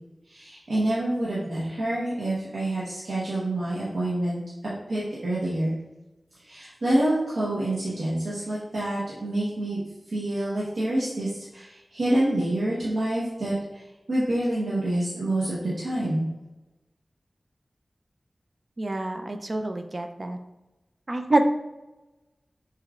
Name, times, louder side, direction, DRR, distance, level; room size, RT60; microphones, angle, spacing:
voice 1, 0.3-5.8 6.4-9.8 10.1-16.2, right 1 dB, 90° right, -9 dB, 1.1 m, -27 dB
voice 2, 18.8-20.4 21.1-21.4, right 2 dB, 45° right, 5 dB, 0.5 m, -26 dB
6.5 x 3.1 x 2.5 m, 1.0 s
wide cardioid pair, 60°, 0 cm